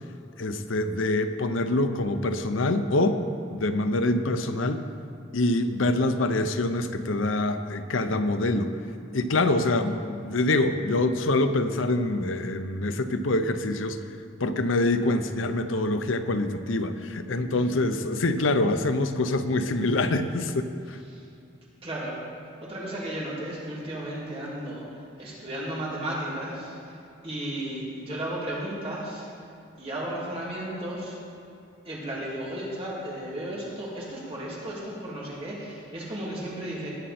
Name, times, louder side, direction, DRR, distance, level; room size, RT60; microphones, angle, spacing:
voice 1, 0.4-3.2 3.5-4.8 5.3-8.7 9.1-14.0 14.4-21.0, left 2 dB, 80° left, 9 dB, 0.7 m, -25 dB
voice 2, 21.8-22.1 22.6-24.8 25.2-26.9 27.2-29.3 29.8-31.2 31.8-36.9, right 1 dB, 30° right, -5 dB, 2.6 m, -34 dB
18.5 x 7.7 x 4.3 m, 2.6 s
head